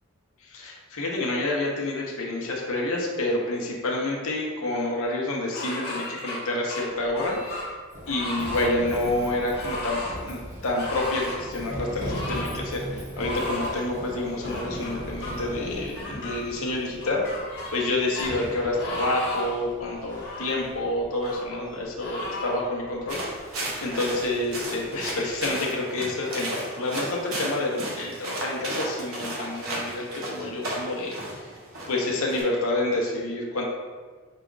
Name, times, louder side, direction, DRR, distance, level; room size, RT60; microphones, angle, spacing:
voice 1, 0.4-7.8 8.1-17.2 17.7-23.2 23.8-31.5 31.9-33.6, left 2 dB, 80° left, -2 dB, 0.9 m, -28 dB
sound 1, 5.5-6.4 6.7-7.7 8.1-8.7 9.5-10.1 10.7-11.4 12.0-12.5 13.2-13.8 14.4-15.3 16.0-16.4 17.0-17.9 18.1-18.3 18.8-19.6 20.1-20.6 21.2-21.4 22.0-22.6, left 2 dB, 50° left, 1.2 m, -35 dB
Run, 6.9-25.5, equal, 35° right, 0.9 m, -39 dB
sound 2, 23.1-32.4, right 1 dB, 85° right, 1.1 m, -34 dB
5.7 x 2.4 x 3.8 m, 1.5 s
head